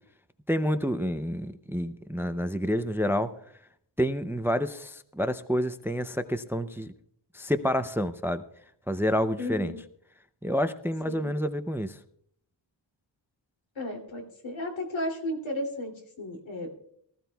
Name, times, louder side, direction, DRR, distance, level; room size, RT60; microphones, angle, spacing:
voice 1, 0.5-3.3 4.0-6.9 7.3-8.4 8.9-9.7 10.4-12.0, equal, 5° right, 11 dB, 0.4 m, -28 dB
voice 2, 9.4-9.8 11.0-11.3 13.7-16.7, left 1 dB, 85° left, 1 dB, 2.9 m, -34 dB
23.5 x 14.5 x 2.3 m, 0.66 s
wide cardioid pair, 130°, 45 cm